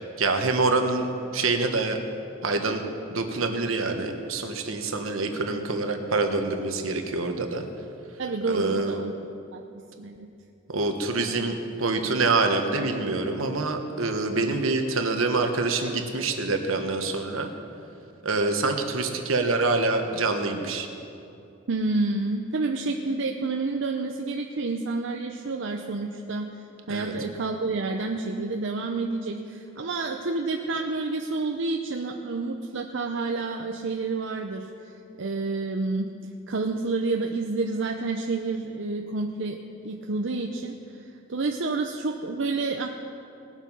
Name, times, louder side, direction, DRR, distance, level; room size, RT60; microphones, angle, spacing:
voice 1, 0.2-1.1 1.3-2.0 2.4-2.8 3.1-7.6 8.4-9.0 10.7-17.5 18.2-20.9 26.9-27.2, right 3 dB, 80° right, 5 dB, 1.2 m, -26 dB
voice 2, 8.2-9.1 9.5-9.6 10.0-10.3 21.7-26.5 26.9-34.7 35.2-36.1 36.5-42.9, right 3 dB, 65° right, 2 dB, 0.6 m, -29 dB
19.5 x 7.4 x 5.5 m, 2.7 s
head